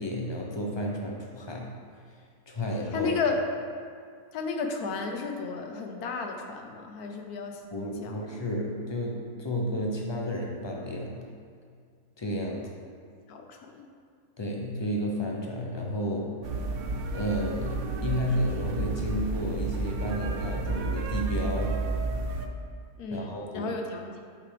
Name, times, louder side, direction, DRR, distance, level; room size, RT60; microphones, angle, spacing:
voice 1, 0.0-1.7 2.5-3.1 7.7-11.3 12.2-12.7 14.4-16.3 17.1-21.8 23.1-23.7, equal, 35° left, -1 dB, 0.4 m, -32 dB
voice 2, 2.9-3.4 4.3-7.6 8.0-8.3 13.3-13.9 23.0-24.2, left 4 dB, 90° left, 3 dB, 1.3 m, -33 dB
sound 1, 16.4-22.5, right 3 dB, 75° right, 0.5 m, -31 dB
8.4 x 4.9 x 3.3 m, 2.1 s
omnidirectional pair, 1.6 m